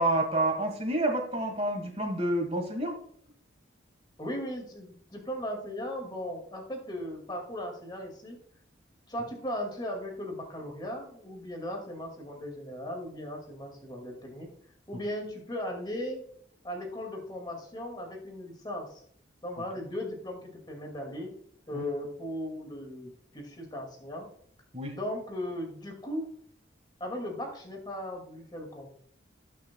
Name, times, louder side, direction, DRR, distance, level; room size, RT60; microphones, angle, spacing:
voice 1, 0.0-3.0 21.7-21.8 24.7-25.0, right 1 dB, 30° right, 4 dB, 1.4 m, -28 dB
voice 2, 4.2-8.4 9.1-14.5 14.9-16.2 16.6-19.0 19.4-21.3 21.7-24.3 24.9-26.3 27.0-28.9, left 1 dB, 25° left, 2 dB, 2.0 m, -37 dB
18.0 x 6.5 x 2.2 m, 0.63 s
head